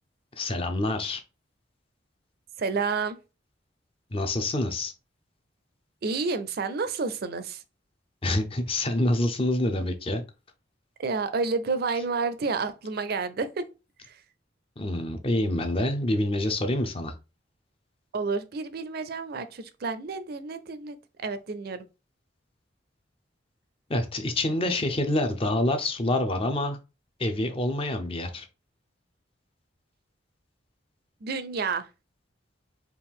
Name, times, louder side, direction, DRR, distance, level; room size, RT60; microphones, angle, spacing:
voice 1, 0.4-1.2 4.1-4.9 8.2-10.2 14.8-17.1 23.9-26.8 27.2-28.5, left 1 dB, 30° left, 0.6 m, -27 dB
voice 2, 2.6-3.2 6.0-7.6 11.0-13.6 14.0-14.1 18.1-21.8 31.2-31.9, right 4 dB, 55° right, 0.5 m, -30 dB
4.5 x 2.4 x 3.6 m
head